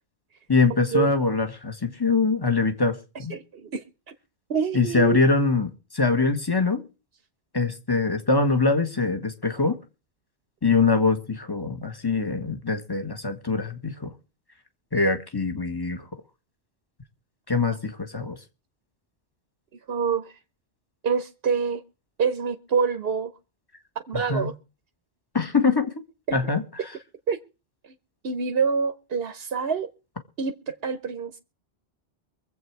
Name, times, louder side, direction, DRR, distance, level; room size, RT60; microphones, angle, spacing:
voice 1, 0.5-3.4 4.7-6.8 7.5-9.8 10.6-14.1 14.9-16.0 17.5-18.4 24.3-24.5 25.3-25.9 26.3-26.6, left 4 dB, 20° left, 1.4 m, -23 dB
voice 2, 3.3-3.8 4.5-5.2 19.9-20.4 21.0-21.8 22.2-23.3 24.1-24.5 27.3-27.4 27.8-27.9 28.2-29.9 30.4-31.4, right 6 dB, 60° right, 1.1 m, -26 dB
23.5 x 8.1 x 4.7 m
omnidirectional pair, 1.2 m